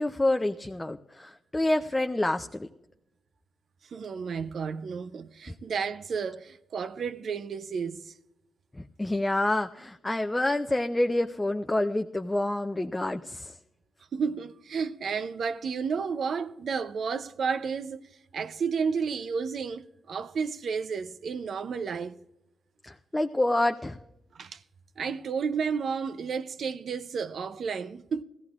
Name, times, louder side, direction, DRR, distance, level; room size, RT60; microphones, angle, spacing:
voice 1, 0.0-2.7 9.0-13.5 22.8-24.0, left 1 dB, 15° left, 0.5 m, -27 dB
voice 2, 3.9-8.1 14.1-22.2 24.3-24.6 25.0-28.2, right 5 dB, 60° right, 0.5 m, -32 dB
19.0 x 15.5 x 2.4 m
cardioid pair, 100°, 0 cm